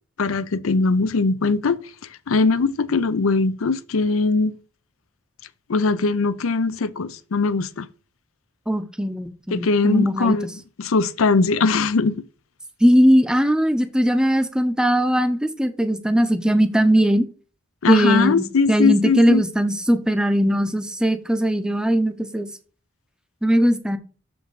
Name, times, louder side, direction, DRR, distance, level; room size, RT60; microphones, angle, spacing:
voice 1, 0.2-1.8 2.1-4.5 5.7-7.9 9.5-10.5 10.8-12.2 17.8-19.5, left 4 dB, 85° left, 0.6 m, -20 dB
voice 2, 8.7-10.4 12.8-17.2 17.9-22.5 23.4-24.0, equal, 5° right, 0.6 m, -19 dB
7.0 x 5.3 x 4.8 m
head